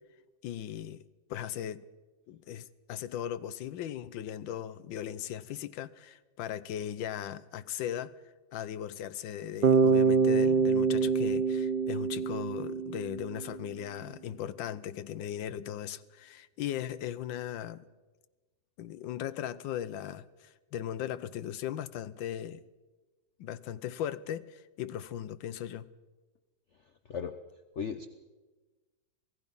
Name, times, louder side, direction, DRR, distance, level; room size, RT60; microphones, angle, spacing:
voice 1, 0.4-1.0 1.3-1.8 2.3-8.1 8.5-17.8 18.8-22.6 23.4-25.9, left 10 dB, 70° left, 1.5 m, -38 dB
Bass guitar, 9.6-13.6, right 5 dB, 80° right, 0.4 m, -25 dB
voice 2, 27.8-28.1, left 6 dB, 50° left, 0.9 m, -35 dB
27.0 x 18.0 x 5.5 m
omnidirectional pair, 2.2 m